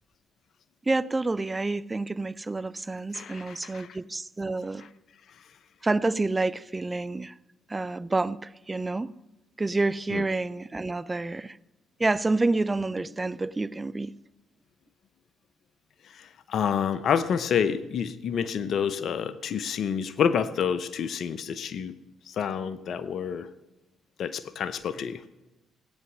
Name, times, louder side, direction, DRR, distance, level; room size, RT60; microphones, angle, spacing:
voice 1, 0.9-4.9 5.8-7.3 7.7-9.2 9.6-11.6 12.0-14.1, right 2 dB, 25° right, 0.6 m, -28 dB
voice 2, 3.1-3.9 10.1-10.2 16.1-22.0 22.3-23.5 24.2-25.2, left 7 dB, 60° left, 0.7 m, -28 dB
17.5 x 9.0 x 6.2 m
hypercardioid pair, 50°, 0 cm